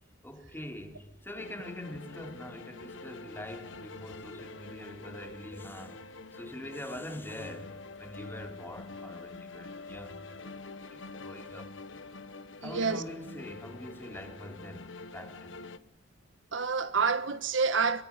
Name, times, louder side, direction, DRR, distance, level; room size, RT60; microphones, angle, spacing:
voice 1, 0.2-10.3 10.9-11.7 12.6-15.6, left 1 dB, 10° left, 3.7 m, -44 dB
sound 1, 1.3-15.8, left 3 dB, 75° left, 1.4 m, -46 dB
voice 2, 12.6-13.0 16.5-18.0, right 5 dB, 70° right, 1.4 m, -28 dB
25.5 x 22.5 x 9.9 m
head